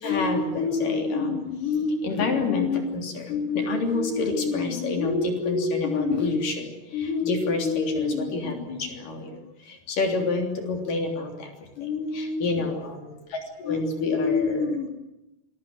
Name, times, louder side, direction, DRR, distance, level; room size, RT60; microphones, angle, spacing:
voice 1, 0.0-11.5 11.8-14.9, left 4 dB, 85° left, 2 dB, 5.1 m, -26 dB
27.0 x 21.5 x 7.9 m, 0.93 s
omnidirectional pair, 3.7 m